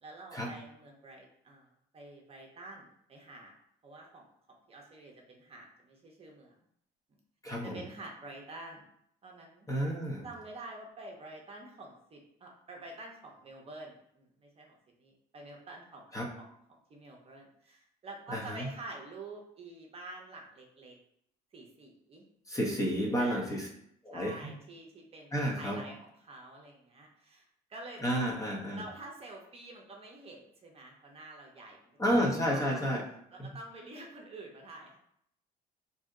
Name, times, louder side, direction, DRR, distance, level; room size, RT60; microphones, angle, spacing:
voice 1, 0.0-3.5 3.8-4.3 4.7-6.6 7.6-8.9 9.2-9.7 10.2-16.1 16.4-21.0 21.5-22.2 23.2-23.5 24.1-28.3 28.7-31.8 32.2-32.8 33.3-35.0, right 2 dB, 35° right, 0 dB, 0.7 m, -48 dB
voice 2, 7.4-7.8 9.7-10.3 16.1-16.3 18.3-18.7 22.5-23.7 24.0-24.5 25.3-25.8 28.0-28.8 32.0-33.0 33.4-33.5, equal, 20° left, -2 dB, 0.7 m, -31 dB
2.6 x 2.0 x 3.7 m, 0.71 s
cardioid pair, 110°, 17 cm